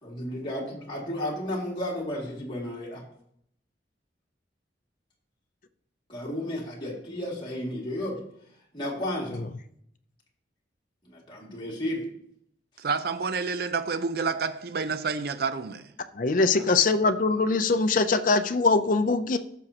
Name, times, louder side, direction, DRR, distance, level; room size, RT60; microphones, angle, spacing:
voice 1, 0.0-3.0 6.1-8.2 8.7-9.4 11.0-12.1 16.5-16.7, left 1 dB, 25° left, 2.3 m, -33 dB
voice 2, 12.8-15.9, right 5 dB, 60° right, 0.5 m, -29 dB
voice 3, 16.2-19.4, left 3 dB, 45° left, 0.5 m, -22 dB
14.5 x 6.2 x 2.9 m
head